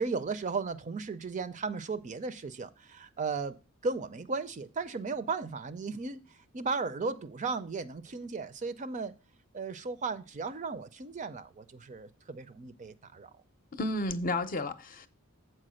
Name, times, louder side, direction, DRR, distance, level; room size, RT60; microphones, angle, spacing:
voice 1, 0.0-3.6 3.8-9.2 9.5-13.3, right 4 dB, 35° right, 0.5 m, -35 dB
voice 2, 13.7-15.1, left 2 dB, 40° left, 0.6 m, -32 dB
7.5 x 4.6 x 6.2 m
head